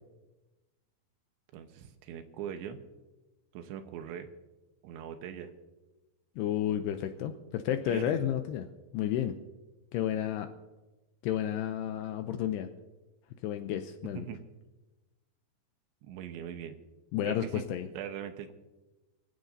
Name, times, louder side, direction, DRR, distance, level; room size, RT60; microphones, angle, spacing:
voice 1, 1.5-2.8 3.5-4.3 4.8-5.5 7.9-8.2 14.1-14.4 16.0-16.8 17.2-17.6 17.9-18.5, right 9 dB, 80° right, 7 dB, 3.2 m, -41 dB
voice 2, 6.4-8.7 8.9-9.4 9.9-10.5 11.2-12.7 13.4-14.2 17.1-17.9, left 10 dB, 85° left, 7 dB, 2.4 m, -31 dB
25.0 x 16.0 x 2.7 m, 1.1 s
omnidirectional pair, 5.4 m